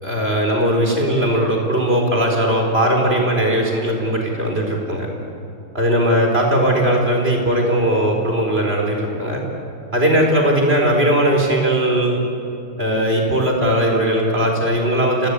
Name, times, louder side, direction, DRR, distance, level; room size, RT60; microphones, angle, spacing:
voice 1, 0.0-5.1 5.7-9.4 9.9-12.2 12.8-15.3, right 1 dB, 25° right, 1 dB, 4.5 m, -18 dB
29.5 x 18.0 x 8.4 m, 2.7 s
omnidirectional pair, 2.3 m